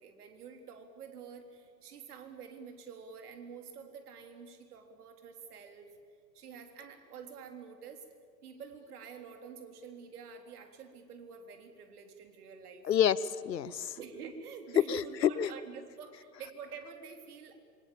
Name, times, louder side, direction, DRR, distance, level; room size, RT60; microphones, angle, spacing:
voice 1, 0.0-5.9 6.3-8.1 8.4-12.9 14.0-17.6, right 6 dB, 60° right, 5 dB, 3.8 m, -48 dB
voice 2, 12.8-14.0 14.9-15.5, left 9 dB, 75° left, 18 dB, 1.1 m, -29 dB
26.5 x 24.5 x 7.4 m, 2.1 s
hypercardioid pair, 115°, 50 cm